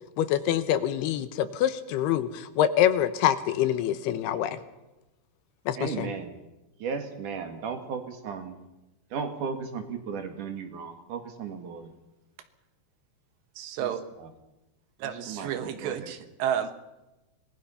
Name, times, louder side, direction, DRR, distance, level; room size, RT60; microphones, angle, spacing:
voice 1, 0.2-4.6 5.7-6.1, left 11 dB, 75° left, 12 dB, 2.8 m, -25 dB
voice 2, 5.7-6.3 6.8-8.6 9.1-11.9 13.8-13.9 14.2-14.3 15.0-16.1, right 5 dB, 55° right, 6 dB, 3.0 m, -35 dB
voice 3, 13.6-14.0 15.0-16.7, right 9 dB, 90° right, 9 dB, 3.6 m, -31 dB
25.5 x 19.5 x 5.7 m, 0.99 s
omnidirectional pair, 4.9 m